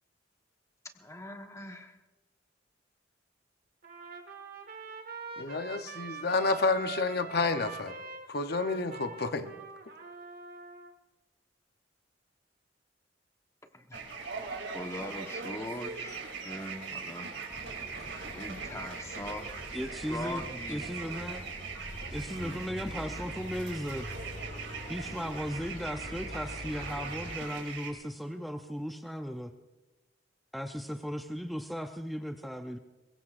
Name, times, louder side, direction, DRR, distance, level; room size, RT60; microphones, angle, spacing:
voice 1, 1.0-2.0 13.7-14.0 14.7-17.3 18.3-19.5 20.1-20.8 22.3-22.6, left 1 dB, 15° left, 5 dB, 1.2 m, -41 dB
Trumpet, 3.8-10.9, right 4 dB, 50° right, 1.6 m, -44 dB
voice 2, 5.4-7.9 8.3-9.5, left 3 dB, 55° left, 8 dB, 0.8 m, -30 dB
sound 1, 13.9-27.9, right 5 dB, 80° right, 3.0 m, -41 dB
sound 2, 17.5-27.3, equal, 40° left, 6.7 m, -44 dB
voice 3, 19.7-21.5 22.1-24.1 24.9-29.5 30.5-32.8, equal, ahead, 5 dB, 0.5 m, -36 dB
23.0 x 21.0 x 2.5 m, 1.1 s
head